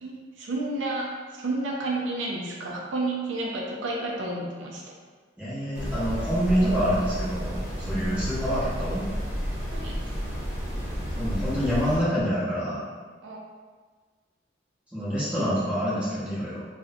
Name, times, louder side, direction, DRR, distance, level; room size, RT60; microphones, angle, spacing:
voice 1, 0.0-4.8 7.8-8.2 9.7-10.0 13.2-13.4, right 2 dB, 70° right, -2 dB, 0.4 m, -31 dB
voice 2, 5.4-7.6 7.9-9.0 11.1-12.8 14.9-16.7, equal, 5° right, -11 dB, 0.7 m, -26 dB
sound 1, 5.7-12.0, equal, 35° right, 0.9 m, -31 dB
2.5 x 2.0 x 2.5 m, 1.5 s
head